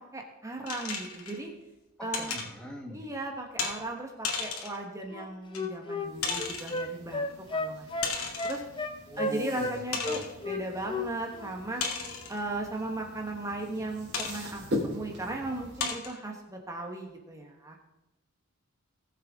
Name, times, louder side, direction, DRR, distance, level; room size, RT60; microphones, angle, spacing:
voice 1, 0.0-1.5 2.0-2.3 2.9-7.9 8.4-8.6 9.2-11.8 12.3-17.8, right 2 dB, 15° right, 1 dB, 1.3 m, -37 dB
sound 1, 0.7-1.4 2.1-2.5 3.6-3.8 4.2-4.8 5.5-5.6 6.2-6.8 8.0-8.6 9.2-9.3 9.9-10.3 11.8-12.4 14.1-14.4 15.1-15.2 15.8-16.2, left 5 dB, 85° left, 2.3 m, -34 dB
voice 2, 2.0-3.1 9.1-9.7 10.1-10.3, equal, 5° left, 1 dB, 1.4 m, -42 dB
Wind instrument woodwind instrument, 5.1-9.8 10.0-11.1 11.3-11.5, left 2 dB, 25° left, 0.8 m, -33 dB
sound 2, 5.9-15.8, left 1 dB, 55° right, 3.3 m, -42 dB
19.5 x 7.4 x 3.7 m, 0.99 s
head